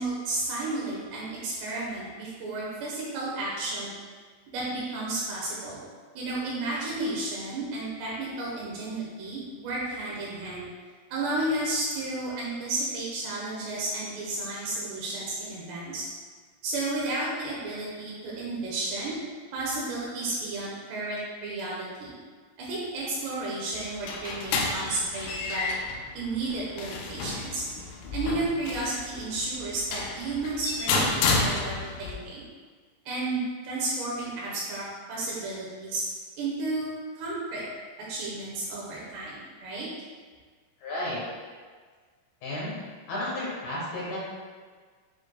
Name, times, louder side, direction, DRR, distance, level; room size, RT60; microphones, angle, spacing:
voice 1, 0.0-3.9 4.5-5.8 6.1-10.7 11.1-16.1 16.6-19.2 19.5-22.1 22.6-25.8 26.1-27.6 28.1-32.5 33.1-36.0 36.4-37.6 38.1-39.9, right 2 dB, 75° right, -6 dB, 3.1 m, -32 dB
sound 1, 23.7-32.1, left 3 dB, 85° left, 2.9 m, -31 dB
voice 2, 40.8-41.2 42.4-42.8 43.1-44.2, left 1 dB, 65° left, -7 dB, 2.7 m, -32 dB
9.8 x 4.4 x 2.3 m, 1.5 s
omnidirectional pair, 5.1 m